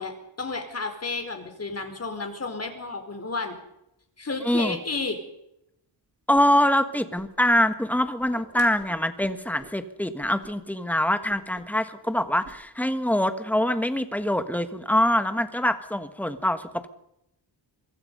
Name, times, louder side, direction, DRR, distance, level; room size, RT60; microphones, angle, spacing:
voice 1, 0.0-3.6 4.2-5.2, left 3 dB, 35° left, 6 dB, 4.4 m, -32 dB
voice 2, 4.4-4.8 6.3-16.9, left 1 dB, 5° left, 10 dB, 1.5 m, -24 dB
Whoosh swoosh swish, 6.3-6.4 6.7-7.6 7.9-9.8 10.2-10.5 10.8-10.9 11.3-11.8 12.0-12.6, right 3 dB, 30° right, 3.6 m, -49 dB
25.5 x 23.5 x 5.4 m, 0.82 s
wide cardioid pair, 150°, 45 cm